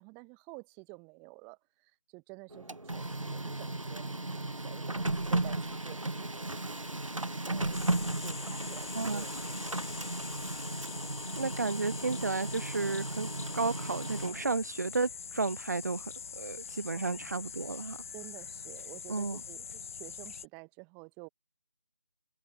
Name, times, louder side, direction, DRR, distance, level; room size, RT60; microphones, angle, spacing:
voice 1, 0.0-5.1 5.3-6.8 7.4-7.8 8.2-10.5 16.9-17.4 18.1-21.3, right 33 dB, 10° right, 1.0 m, -51 dB
Printer, 2.5-14.6, right 2 dB, 85° right, 1.2 m, -35 dB
sound 1, 7.7-20.5, left 6 dB, 25° left, 1.2 m, -44 dB
voice 2, 8.9-9.3 11.4-16.1 16.4-18.0 19.1-19.4, right 3 dB, 35° right, 0.4 m, -33 dB
figure-of-eight pair, 155°, 16 cm